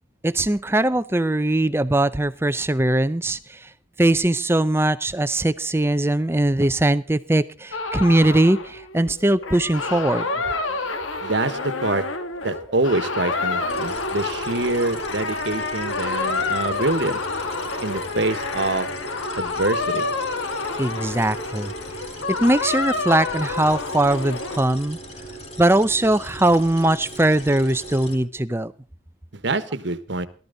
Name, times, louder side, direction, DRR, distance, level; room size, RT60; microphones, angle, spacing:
voice 1, 0.2-3.7 4.0-10.3 20.8-21.7 22.3-25.0 25.6-28.7, right 1 dB, 10° right, 14 dB, 0.6 m, -20 dB
sound 1, 7.7-24.6, left 3 dB, 85° left, 2.0 m, -28 dB
voice 2, 11.2-12.0 12.4-17.2 17.8-18.9 19.4-20.1 29.3-30.3, right 2 dB, 65° right, 13 dB, 1.3 m, -25 dB
sound 2, 13.7-28.2, right 1 dB, 35° left, 3.9 m, -39 dB
18.0 x 13.0 x 4.0 m, 0.39 s
head